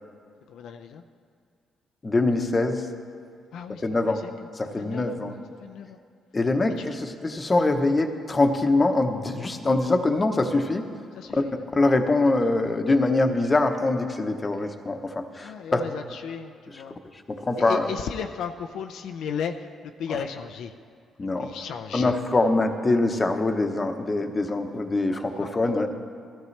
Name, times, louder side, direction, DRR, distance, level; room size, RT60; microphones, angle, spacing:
voice 1, 0.5-1.0 3.5-4.3 4.8-6.0 6.7-6.9 11.2-11.6 15.4-17.0 17.6-20.7 21.2-22.2 25.4-25.8, left 7 dB, 80° left, 5 dB, 0.5 m, -35 dB
voice 2, 2.0-2.9 3.8-4.2 4.6-5.3 6.3-10.8 11.7-15.8 17.3-17.9 21.2-21.5 21.9-25.9, left 2 dB, 25° left, 6 dB, 0.9 m, -23 dB
16.0 x 13.5 x 3.3 m, 2.2 s
cardioid pair, 90°, 0 cm